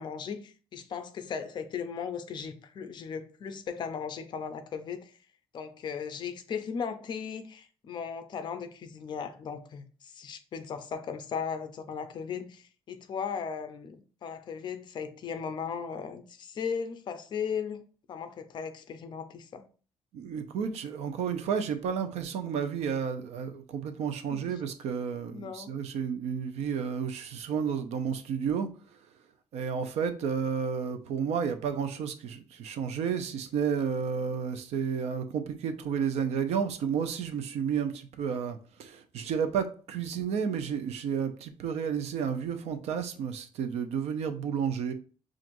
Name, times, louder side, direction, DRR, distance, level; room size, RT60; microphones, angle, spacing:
voice 1, 0.0-5.1 5.5-14.0 14.2-17.8 18.1-19.6 24.3-24.4 25.3-25.7, left 6 dB, 45° left, 0.5 m, -37 dB
voice 2, 20.1-29.0 29.5-44.9, right 7 dB, 75° right, 0.6 m, -31 dB
5.9 x 2.5 x 2.6 m
cardioid pair, 170°, 11 cm